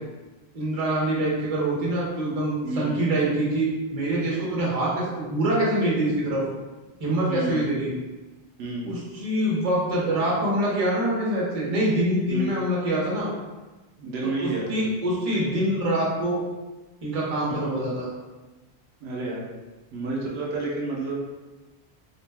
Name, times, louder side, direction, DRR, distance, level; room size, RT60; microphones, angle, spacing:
voice 1, 0.5-6.4 7.0-7.9 8.8-13.3 14.4-16.4 17.0-18.1, right 1 dB, 40° right, -5 dB, 0.8 m, -25 dB
voice 2, 2.6-2.9 7.3-7.7 8.6-8.9 12.3-12.5 14.0-14.8 17.5-17.6 19.0-19.4 19.9-21.1, right 2 dB, 80° right, -3 dB, 0.9 m, -30 dB
2.6 x 2.2 x 3.3 m, 1.2 s
omnidirectional pair, 1.1 m